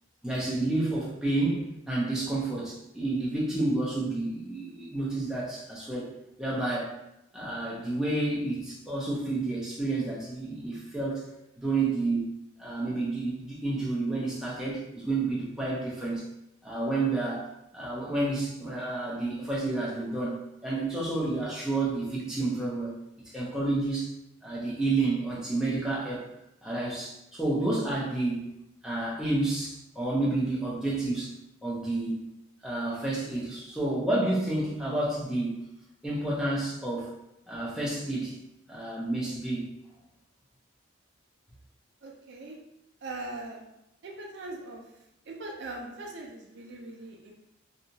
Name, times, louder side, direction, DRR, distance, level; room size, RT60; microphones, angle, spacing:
voice 1, 0.2-6.1 6.4-7.0 7.3-11.2 11.6-12.3 12.6-16.3 16.6-23.0 23.3-24.1 24.4-26.3 26.6-28.4 28.8-31.4 31.6-32.3 32.6-35.6 36.0-37.1 37.5-38.4 38.7-39.7, right 2 dB, 5° right, -6 dB, 0.5 m, -30 dB
voice 2, 42.0-42.6 43.0-43.6 44.0-44.8 45.3-47.3, right 2 dB, 55° right, 0 dB, 0.4 m, -40 dB
2.7 x 2.3 x 2.7 m, 0.86 s
head